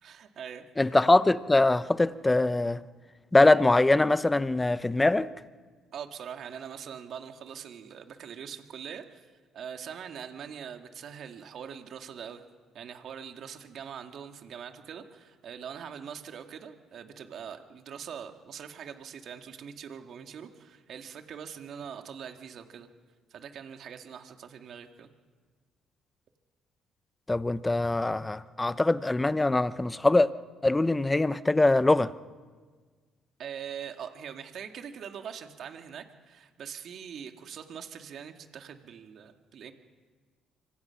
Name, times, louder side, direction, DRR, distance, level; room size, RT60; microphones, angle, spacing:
voice 1, 0.0-0.7 5.9-9.3 9.5-12.4 12.7-22.9 23.3-25.1 33.4-39.7, right 8 dB, 60° right, 2.2 m, -42 dB
voice 2, 0.8-2.8 3.3-5.3 27.3-30.3 30.6-32.1, left 2 dB, 15° left, 1.0 m, -23 dB
25.5 x 25.0 x 5.9 m
supercardioid pair, 75°, 0 cm